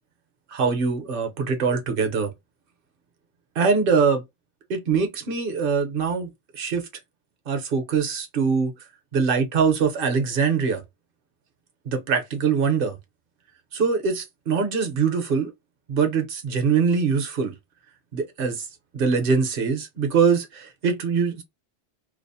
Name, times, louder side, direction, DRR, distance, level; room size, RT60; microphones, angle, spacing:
voice 1, 0.5-2.3 3.6-4.2 4.7-6.9 7.5-8.7 9.1-10.8 11.8-13.0 13.7-15.5 15.9-17.5 18.1-18.7 18.9-21.4, right 5 dB, 55° right, 0.9 m, -23 dB
2.6 x 2.0 x 2.6 m
omnidirectional pair, 1.2 m